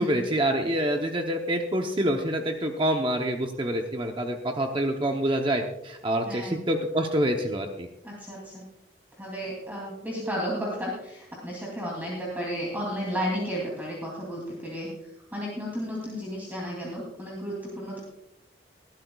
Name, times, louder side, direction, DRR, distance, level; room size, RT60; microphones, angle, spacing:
voice 1, 0.0-7.9, right 1 dB, 30° right, 3 dB, 0.8 m, -26 dB
voice 2, 6.3-6.6 8.0-8.6 9.2-14.9 15.3-18.0, equal, 10° right, -4 dB, 2.8 m, -33 dB
20.5 x 12.0 x 2.4 m, 0.87 s
head